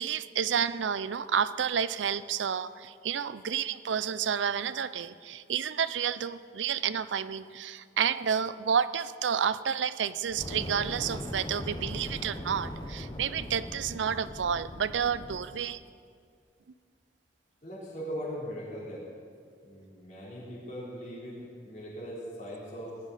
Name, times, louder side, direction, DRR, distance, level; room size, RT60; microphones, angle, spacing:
voice 1, 0.0-15.8, right 7 dB, 90° right, 15 dB, 0.5 m, -30 dB
Fire, 10.3-15.6, left 1 dB, 25° left, 0.9 m, -40 dB
voice 2, 17.6-19.1 19.6-23.0, equal, 45° left, -7 dB, 3.7 m, -40 dB
18.5 x 13.5 x 4.2 m, 2.2 s
head